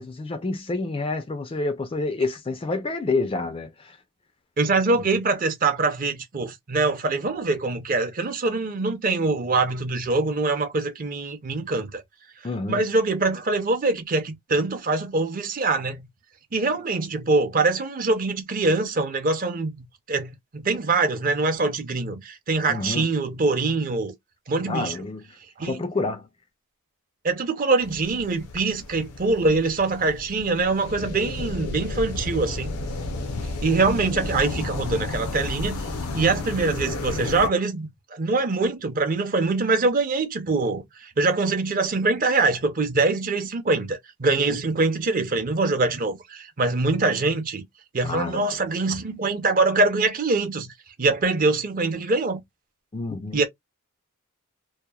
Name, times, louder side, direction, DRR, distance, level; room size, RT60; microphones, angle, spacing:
voice 1, 0.0-4.0 5.0-5.1 12.4-12.9 22.7-23.1 24.7-25.4 25.6-26.3 48.0-48.4 52.9-53.4, left 3 dB, 25° left, 0.3 m, -28 dB
voice 2, 4.6-12.0 12.7-16.1 16.5-24.1 24.5-25.0 25.6-25.8 27.2-32.7 33.6-35.8 36.1-47.6 47.9-50.7 51.0-52.4 53.3-53.4, right 3 dB, 40° right, 0.6 m, -24 dB
sound 1, 27.8-37.5, left 2 dB, 80° left, 0.5 m, -32 dB
2.7 x 2.0 x 2.2 m
head